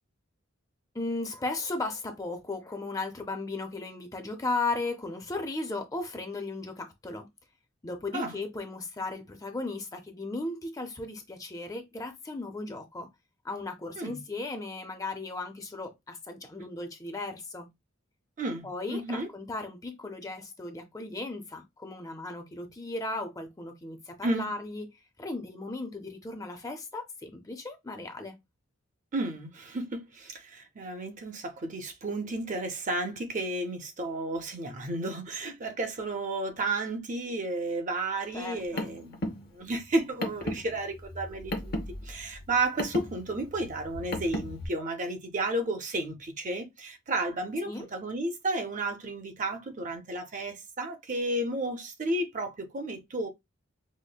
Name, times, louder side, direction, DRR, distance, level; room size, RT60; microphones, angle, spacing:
voice 1, 0.9-7.3 7.8-13.1 13.4-17.7 18.6-24.9 25.2-28.4 38.3-38.9 47.6-47.9, left 2 dB, 15° left, 0.5 m, -36 dB
voice 2, 18.4-19.3 24.2-24.5 29.1-39.3 39.5-41.7 42.1-53.3, right 2 dB, 40° right, 0.6 m, -32 dB
Car, 38.4-44.7, left 1 dB, 50° left, 0.8 m, -36 dB
5.0 x 2.1 x 2.2 m
head